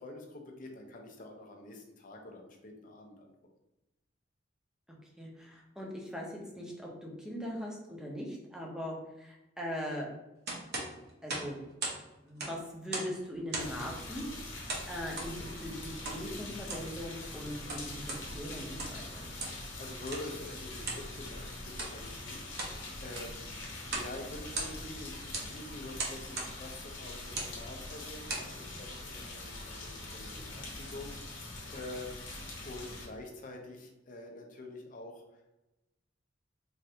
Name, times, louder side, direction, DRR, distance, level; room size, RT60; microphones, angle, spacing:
voice 1, 0.0-3.3 19.5-32.3 32.6-35.6, left 2 dB, 45° left, 3 dB, 0.5 m, -47 dB
voice 2, 5.2-10.1 11.2-11.6 12.2-14.3 14.5-19.3, equal, 5° right, -2 dB, 0.6 m, -40 dB
sound 1, 10.5-12.0 12.3-13.2 13.5-13.9 14.7-15.3 16.0-16.2 16.6-16.9 17.5-18.2 18.7-19.0 19.4-19.6 20.1-20.3 20.8-21.1 21.7-22.0 22.4-22.8 23.1-23.4 23.9-24.1 24.4-25.0 25.3-25.5 26.0-26.5 27.2-27.6 28.1-28.5, right 2 dB, 55° right, 0.7 m, -38 dB
sound 2, 13.6-33.1, left 2 dB, 75° left, 0.8 m, -43 dB
3.2 x 2.5 x 2.7 m, 0.97 s
head